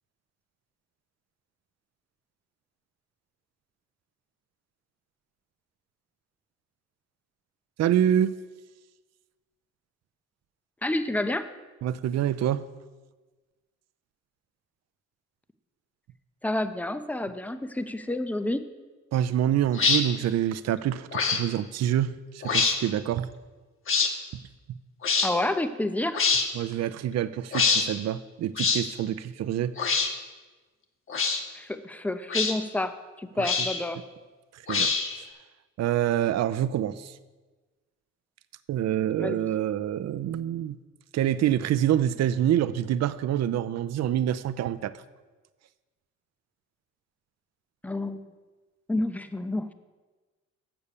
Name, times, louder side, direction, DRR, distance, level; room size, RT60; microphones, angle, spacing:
voice 1, 7.8-8.3 11.8-12.7 19.1-23.3 26.5-29.7 33.4-33.5 34.7-34.9 35.8-37.1 38.7-40.8 41.1-44.9, right 11 dB, 60° right, 15 dB, 0.5 m, -26 dB
voice 2, 10.8-11.5 16.4-18.6 25.2-26.2 31.5-34.0 39.2-39.5 47.8-48.2 48.9-49.7, left 1 dB, 5° left, 10 dB, 0.5 m, -29 dB
sound 1, 19.7-20.0 21.1-21.4 22.4-22.8 23.9-24.1 25.0-25.3 26.1-26.5 27.5-27.8 28.6-28.8 29.8-30.1 31.1-31.4 32.3-32.5 33.4-33.8 34.7-35.2, left 4 dB, 45° left, 1.0 m, -24 dB
7.0 x 6.9 x 6.7 m, 1.3 s
cardioid pair, 90°, 30 cm